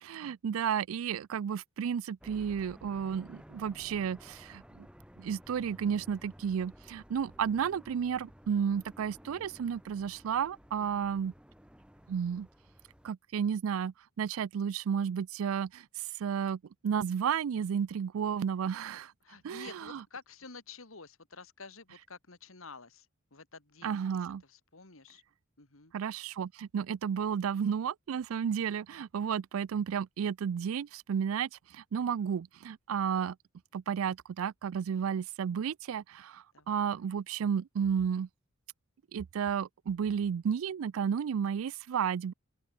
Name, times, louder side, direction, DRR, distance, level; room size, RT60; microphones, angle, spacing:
voice 1, 0.0-4.9 5.2-11.3 12.1-12.5 13.0-15.8 16.2-19.1 19.4-20.0 23.8-24.4 25.9-33.4 33.7-38.3 39.1-42.3, right 7 dB, 80° right, 0.4 m, -32 dB
sound 1, 2.2-13.1, equal, 5° right, 7.1 m, -54 dB
voice 2, 10.8-11.1 19.2-23.1 23.3-25.2 25.6-25.9 36.5-36.9, left 4 dB, 80° left, 3.0 m, -50 dB
head